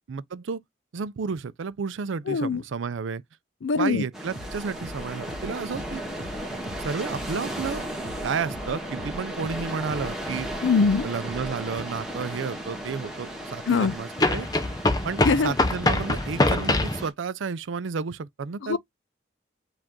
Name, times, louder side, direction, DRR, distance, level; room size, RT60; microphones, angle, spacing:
voice 1, 0.1-0.6 0.9-3.2 3.8-6.0 6.8-7.8 8.2-10.5 11.0-14.5 15.0-18.8, right 5 dB, 80° right, 0.4 m, -31 dB
voice 2, 2.3-2.6 3.6-4.0 10.6-11.1 13.7-13.9 15.2-15.5 18.6-18.8, left 4 dB, 80° left, 0.4 m, -22 dB
sound 1, 4.1-17.1, right 1 dB, ahead, 1.3 m, -36 dB
sound 2, 4.3-14.0, equal, 65° right, 1.5 m, -42 dB
sound 3, 11.8-11.9 14.2-17.0, left 2 dB, 20° left, 0.5 m, -23 dB
4.9 x 2.5 x 3.6 m
head